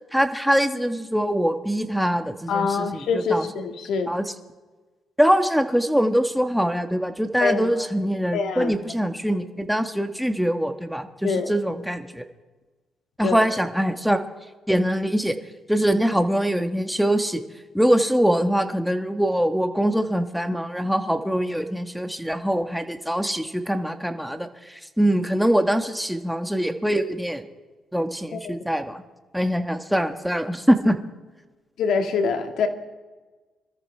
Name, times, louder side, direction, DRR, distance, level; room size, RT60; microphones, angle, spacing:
voice 1, 0.1-3.5 4.1-4.2 5.2-12.2 13.2-14.2 14.7-15.4 15.7-17.4 17.7-27.4 27.9-29.0 29.3-31.0, equal, ahead, 6 dB, 1.3 m, -23 dB
voice 2, 2.5-4.1 7.4-7.9 8.3-8.7 11.2-11.5 13.2-13.4 28.3-28.6 31.8-32.7, left 5 dB, 75° left, 5 dB, 1.8 m, -25 dB
26.0 x 13.5 x 3.4 m, 1.3 s
cardioid pair, 90°, 0 cm